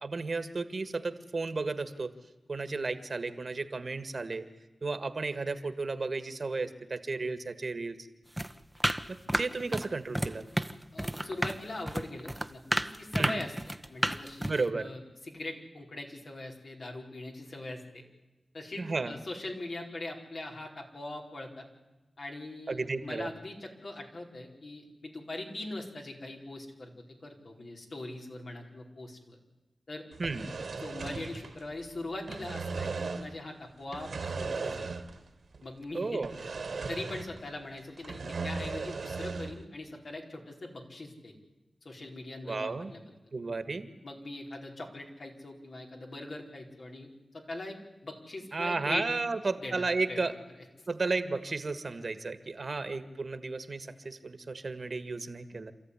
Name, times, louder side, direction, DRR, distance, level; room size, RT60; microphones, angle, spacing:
voice 1, 0.0-2.1 2.5-4.4 4.8-8.0 9.1-10.4 13.2-13.4 14.4-14.9 18.8-19.1 22.7-23.3 30.2-30.5 35.9-36.3 42.5-42.9 43.3-43.9 48.5-50.4 50.9-55.7, right 3 dB, 60° right, 10 dB, 1.8 m, -33 dB
sound 1, 8.4-9.9 10.1-10.7 11.0-14.7, right 1 dB, 10° right, 1.1 m, -31 dB
voice 2, 10.9-13.5 13.9-18.0 18.5-21.7 22.2-26.9 27.2-29.4 29.9-30.0 30.8-34.9 35.6-36.5 36.9-41.4 41.8-43.0 44.0-49.0 49.6-49.8 50.1-50.2 50.8-50.9, left 2 dB, 65° left, 0 dB, 4.7 m, -41 dB
sound 2, 30.1-31.9 32.1-33.4 33.9-35.3 35.5-35.6 36.2-37.5 37.8-39.6, right 4 dB, 75° right, 2.1 m, -37 dB
27.5 x 14.0 x 10.0 m, 1.1 s
cardioid pair, 45°, 0 cm